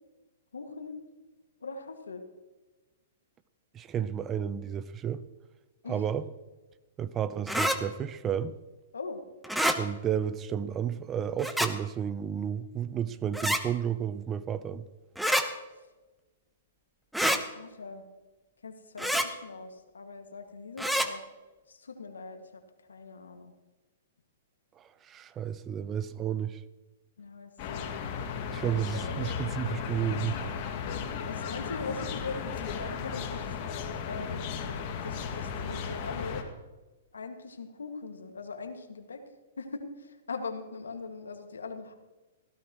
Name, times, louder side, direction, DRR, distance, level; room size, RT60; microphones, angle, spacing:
voice 1, 0.5-1.0 1.6-2.2 5.8-6.0 8.9-9.2 17.2-18.0 18.6-21.2 21.7-22.6 22.9-23.5 27.2-27.9 28.6-28.7 29.1-29.8 31.3-33.6 34.0-34.5 35.0-36.4 37.1-39.2 39.6-41.9, left 4 dB, 90° left, 2.0 m, -41 dB
voice 2, 3.7-5.2 5.9-6.3 7.0-8.6 9.8-14.8 24.8-26.6 28.5-30.4, right 9 dB, 25° right, 0.7 m, -32 dB
sound 1, 7.5-7.8 9.4-9.8 11.4-11.7 13.3-13.6 15.2-15.4 17.1-17.4 19.0-19.3 20.8-21.1, equal, ahead, 1.1 m, -26 dB
sound 2, 27.6-36.4, left 6 dB, 45° left, 2.2 m, -35 dB
17.5 x 16.0 x 3.1 m
hypercardioid pair, 125°, 0 cm